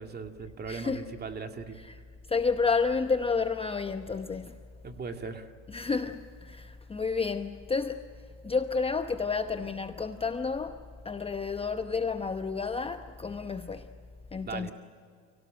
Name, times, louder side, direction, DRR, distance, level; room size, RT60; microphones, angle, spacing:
voice 1, 0.0-1.8 4.8-5.5 14.5-14.7, right 5 dB, 25° right, 2.2 m, -38 dB
voice 2, 0.7-1.1 1.7-2.0 2.3-4.6 5.7-8.0 8.4-13.9 14.3-14.7, left 4 dB, 15° left, 0.9 m, -31 dB
29.5 x 17.5 x 7.6 m
supercardioid pair, 95°, 38 cm